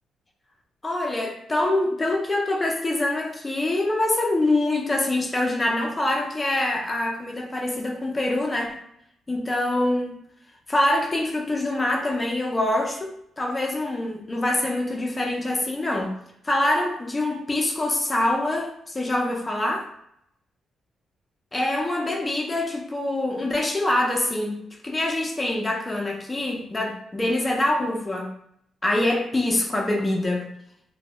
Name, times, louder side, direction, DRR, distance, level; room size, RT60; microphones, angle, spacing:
voice 1, 0.8-8.8 9.3-10.2 10.7-16.1 16.4-19.9 21.5-24.6 24.8-28.3 28.8-30.5, left 1 dB, 20° left, 0 dB, 0.5 m, -25 dB
2.2 x 2.1 x 2.9 m, 0.73 s
cardioid pair, 95°, 0 cm